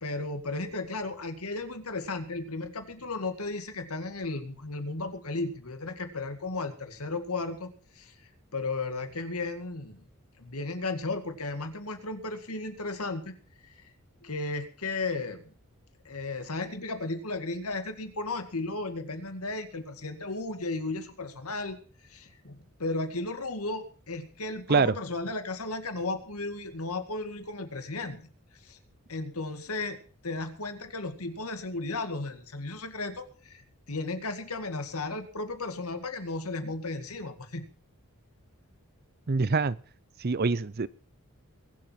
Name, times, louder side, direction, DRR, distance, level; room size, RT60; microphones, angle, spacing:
voice 1, 0.0-7.7 8.0-8.1 8.5-10.0 10.4-13.3 13.6-13.7 14.2-15.5 16.1-21.8 22.0-28.2 28.6-28.8 29.1-33.6 33.9-37.7, left 3 dB, 80° left, 2.2 m, -34 dB
voice 2, 39.3-39.8 40.2-40.9, right 4 dB, 45° right, 0.6 m, -24 dB
22.0 x 7.6 x 5.8 m
head